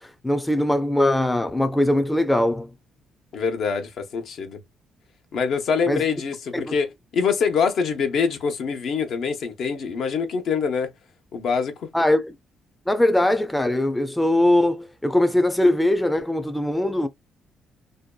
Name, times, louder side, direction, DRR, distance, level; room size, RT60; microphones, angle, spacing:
voice 1, 0.0-2.7 5.9-6.0 6.5-6.7 11.9-12.3 12.9-17.1, left 1 dB, 5° left, 0.4 m, -21 dB
voice 2, 3.3-4.6 5.3-10.9 11.3-11.9, left 6 dB, 70° left, 0.7 m, -25 dB
2.6 x 2.2 x 2.2 m
cardioid pair, 90°, 0 cm